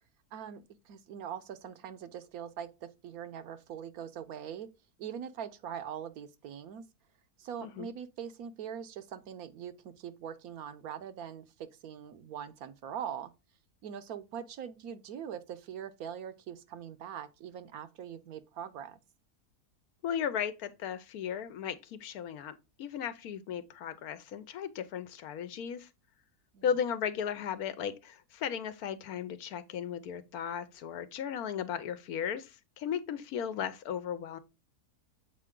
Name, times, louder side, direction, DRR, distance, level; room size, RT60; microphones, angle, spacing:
voice 1, 0.3-4.7 5.0-6.8 7.4-13.3 13.8-19.0 26.5-26.7, right 8 dB, 70° right, 1.1 m, -42 dB
voice 2, 20.0-25.9 26.6-34.4, left 8 dB, 75° left, 1.1 m, -36 dB
7.5 x 4.5 x 3.6 m
omnidirectional pair, 1.7 m